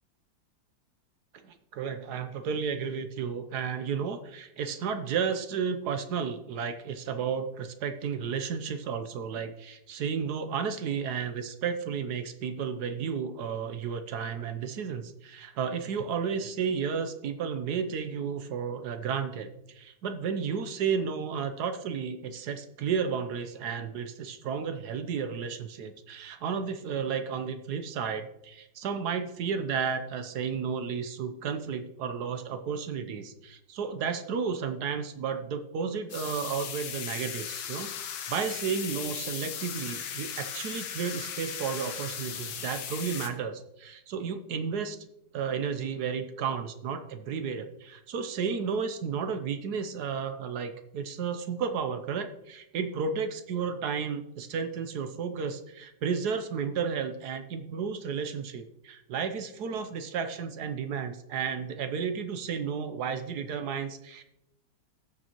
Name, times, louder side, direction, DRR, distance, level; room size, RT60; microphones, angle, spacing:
voice 1, 1.3-45.0 45.3-64.2, right 6 dB, 65° right, 8 dB, 1.1 m, -32 dB
sound 1, 36.1-43.3, left 8 dB, 80° left, 1.7 m, -37 dB
18.0 x 6.8 x 3.0 m, 0.86 s
omnidirectional pair, 2.2 m